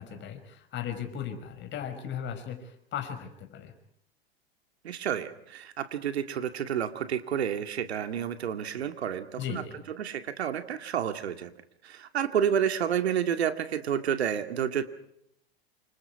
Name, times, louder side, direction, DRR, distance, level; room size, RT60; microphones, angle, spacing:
voice 1, 0.0-3.7 9.4-9.8, left 8 dB, 35° left, 6 dB, 5.6 m, -37 dB
voice 2, 4.8-9.6 10.0-11.5 11.8-14.8, right 8 dB, 80° right, 8 dB, 2.3 m, -30 dB
28.5 x 26.0 x 4.8 m, 0.72 s
hypercardioid pair, 105°, 31 cm